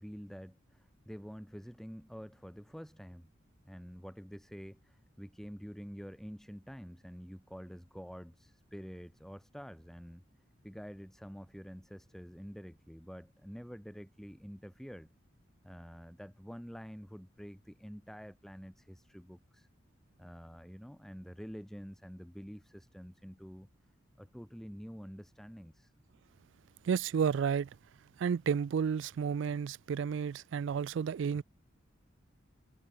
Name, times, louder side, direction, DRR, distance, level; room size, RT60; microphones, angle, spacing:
voice 1, 0.0-3.3 3.6-10.2 10.6-15.1 15.6-19.7 20.2-23.7 24.2-25.9, equal, ahead, 2.8 m, -48 dB
voice 2, 26.8-27.7 28.2-31.4, right 7 dB, 70° right, 0.3 m, -31 dB
head